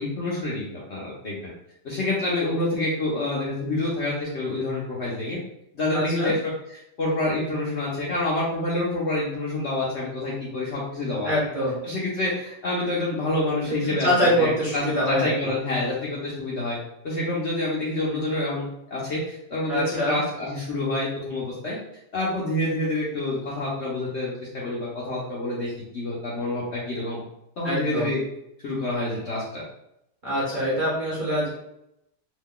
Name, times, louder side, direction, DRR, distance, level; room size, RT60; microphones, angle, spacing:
voice 1, 0.0-1.5 1.8-5.4 5.7-11.3 11.8-16.8 17.0-21.8 22.1-27.2 27.6-28.2 28.6-29.6, left 2 dB, 60° left, -5 dB, 0.8 m, -27 dB
voice 2, 5.9-6.3 11.2-11.8 13.6-15.3 19.7-20.2 27.6-28.1 30.2-31.5, equal, 40° right, -7 dB, 0.8 m, -24 dB
2.9 x 2.2 x 3.6 m, 0.80 s
omnidirectional pair, 1.8 m